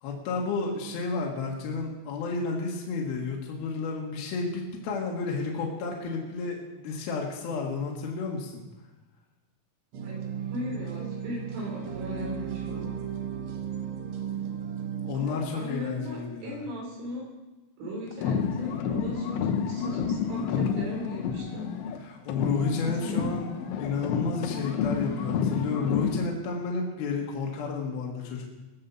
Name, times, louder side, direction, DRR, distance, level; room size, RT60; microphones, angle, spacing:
voice 1, 0.0-8.6 15.0-16.6 22.0-23.5 23.8-28.5, left 4 dB, 60° left, -1 dB, 3.3 m, -31 dB
sound 1, 9.9-15.1, right 8 dB, 65° right, 1.6 m, -35 dB
voice 2, 10.5-12.9 15.1-17.3 17.8-21.7 22.8-23.6, left 1 dB, 90° right, -3 dB, 7.1 m, -37 dB
sound 2, 18.1-22.0 22.3-26.3, left 6 dB, 80° left, 3.4 m, -30 dB
19.5 x 7.8 x 7.0 m, 1.1 s
omnidirectional pair, 5.3 m